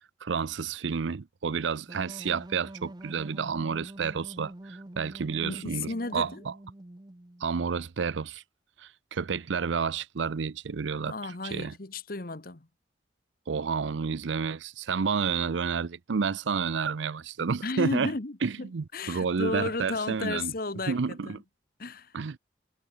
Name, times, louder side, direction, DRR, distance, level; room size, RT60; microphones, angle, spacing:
voice 1, 0.2-6.5 7.4-8.4 8.8-11.7 13.5-18.1 18.4-20.5 20.9-21.4 22.1-22.4, right 5 dB, 90° right, 0.5 m, -30 dB
sound 1, 1.9-7.5, right 1 dB, 25° right, 0.8 m, -46 dB
voice 2, 5.4-6.4 11.0-12.7 17.6-21.4 21.8-22.1, left 2 dB, 50° left, 1.3 m, -34 dB
head